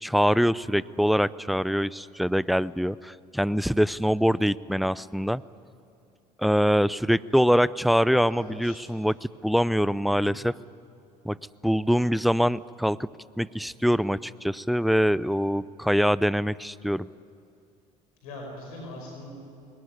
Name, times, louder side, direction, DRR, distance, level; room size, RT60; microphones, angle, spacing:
voice 1, 0.0-5.4 6.4-10.5 11.2-11.4 11.6-13.1 13.4-17.1, equal, ahead, 19 dB, 0.5 m, -24 dB
voice 2, 8.0-8.8 10.2-10.3 18.2-19.3, left 2 dB, 85° left, 1 dB, 5.4 m, -41 dB
21.5 x 18.5 x 9.7 m, 2.6 s
hypercardioid pair, 65°, 19 cm